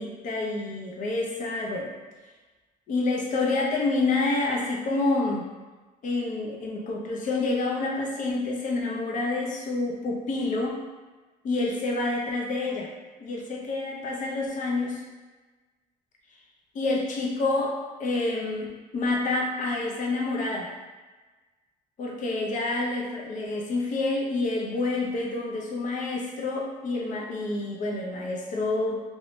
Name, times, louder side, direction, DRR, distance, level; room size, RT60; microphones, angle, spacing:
voice 1, 0.0-1.9 2.9-5.5 6.0-10.8 11.4-12.9 13.2-15.0 16.7-20.7 22.0-29.0, left 2 dB, 50° left, -1 dB, 0.6 m, -28 dB
3.0 x 2.2 x 3.1 m, 1.3 s
cardioid pair, 110°, 17 cm